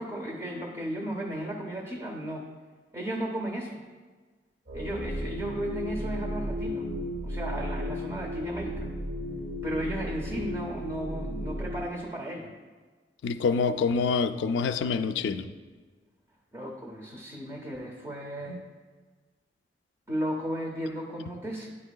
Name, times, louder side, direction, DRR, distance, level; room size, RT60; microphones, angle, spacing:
voice 1, 0.0-2.5 2.9-3.8 4.7-6.9 7.2-8.9 9.6-12.5 16.5-18.6 20.1-21.7, right 1 dB, 15° right, 0 dB, 0.5 m, -35 dB
sound 1, 4.7-11.9, equal, 60° right, 0.7 m, -34 dB
voice 2, 13.2-15.5, left 5 dB, 70° left, 9 dB, 0.3 m, -26 dB
9.6 x 4.6 x 2.2 m, 1.4 s
head